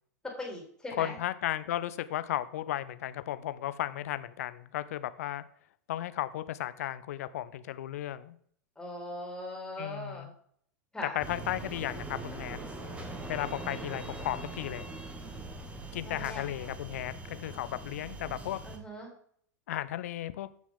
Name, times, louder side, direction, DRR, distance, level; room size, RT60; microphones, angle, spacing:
voice 1, 0.4-1.2 8.8-10.3 10.9-11.2 16.0-16.5 18.6-19.1, left 1 dB, 10° left, -1 dB, 3.7 m, -40 dB
voice 2, 1.0-5.4 5.9-8.4 9.8-10.3 11.1-12.6 13.3-14.9 15.9-18.6 19.7-20.5, left 13 dB, 60° left, 14 dB, 0.7 m, -35 dB
sound 1, 11.2-18.8, right 2 dB, 15° right, 1.8 m, -42 dB
14.5 x 6.1 x 3.8 m, 0.62 s
figure-of-eight pair, 90°, 9 cm